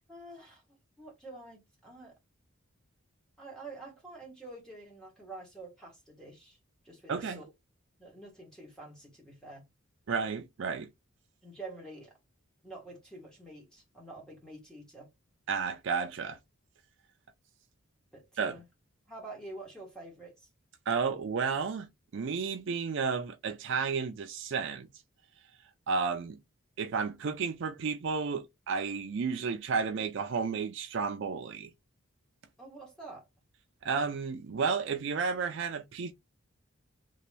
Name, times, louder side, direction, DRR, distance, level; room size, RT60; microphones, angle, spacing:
voice 1, 0.1-2.1 3.4-6.6 6.8-7.5 8.0-9.6 11.4-12.2 12.6-15.1 18.1-18.6 19.1-20.5 32.6-33.2, right 2 dB, 5° left, 1.3 m, -47 dB
voice 2, 7.1-7.4 10.1-10.9 15.5-16.4 18.4-18.5 20.9-21.9 22.1-24.9 25.9-26.4 26.8-31.7 33.8-36.1, right 5 dB, 55° right, 0.4 m, -32 dB
2.9 x 2.8 x 3.2 m
head